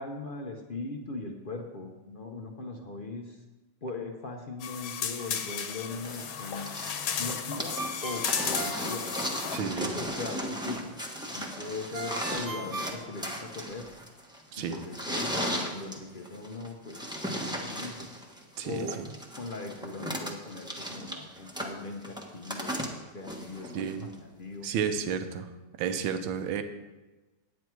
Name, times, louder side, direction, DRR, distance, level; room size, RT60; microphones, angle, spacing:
voice 1, 0.0-3.4 3.8-6.7 7.2-9.1 9.6-10.9 11.3-13.9 14.6-17.1 17.4-18.1 18.6-19.0 19.4-24.7, left 3 dB, 65° left, 2 dB, 0.5 m, -40 dB
sound 1, 4.6-9.6, left 8 dB, 85° left, 1.6 m, -34 dB
sound 2, 6.0-24.1 25.2-25.3, equal, 5° right, 0.7 m, -36 dB
Ringtone, 7.8-9.7 11.9-13.8, right 2 dB, 40° right, 1.4 m, -38 dB
voice 2, 9.5-9.9 14.5-14.8 18.6-19.1 21.1-21.2 23.7-24.1 24.6-25.5 25.8-26.6, right 7 dB, 80° right, 8 dB, 1.5 m, -32 dB
9.4 x 9.4 x 4.6 m, 1.1 s
omnidirectional pair, 2.1 m